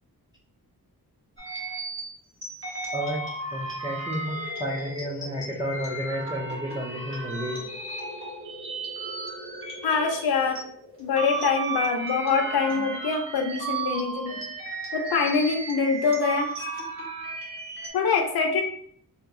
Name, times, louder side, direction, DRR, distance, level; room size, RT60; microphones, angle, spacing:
sound 1, 1.4-10.6 11.0-17.9, right 3 dB, 35° right, 1.3 m, -34 dB
voice 1, 2.9-3.2 3.5-7.6, equal, 10° right, -2 dB, 0.4 m, -31 dB
sound 2, 4.3-13.6, equal, 75° right, 1.3 m, -44 dB
voice 2, 9.8-10.6 11.0-14.4 14.9-16.5 17.9-18.6, left 5 dB, 75° left, 3 dB, 0.6 m, -24 dB
2.8 x 2.3 x 3.6 m, 0.65 s
wide cardioid pair, 115°, 37 cm